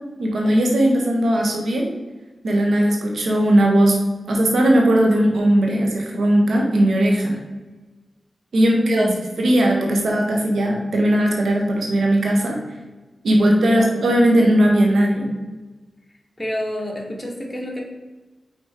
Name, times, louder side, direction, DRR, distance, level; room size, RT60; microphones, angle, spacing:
voice 1, 0.2-1.9 2.4-4.0 4.3-7.4 8.5-9.1 9.4-12.6 13.2-15.3, right 1 dB, 80° right, 0 dB, 1.3 m, -18 dB
voice 2, 8.6-9.4 13.4-13.9 16.4-17.8, equal, 20° left, -2 dB, 1.8 m, -29 dB
5.3 x 4.2 x 4.4 m, 1.2 s
cardioid pair, 40°, 0 cm